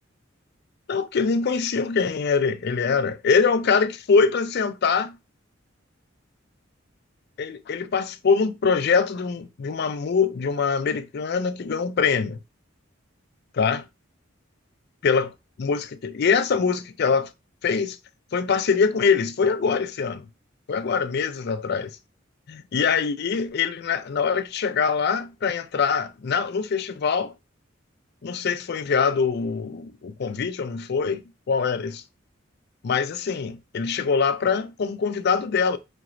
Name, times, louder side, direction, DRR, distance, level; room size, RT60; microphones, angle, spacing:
voice 1, 0.9-5.2 7.4-12.4 13.5-13.8 15.0-15.3 15.6-17.3 17.6-18.0 18.3-20.3 20.7-22.0 22.5-27.3 28.2-32.0 32.8-35.8, left 5 dB, 55° left, 0.4 m, -23 dB
4.4 x 2.9 x 2.5 m
head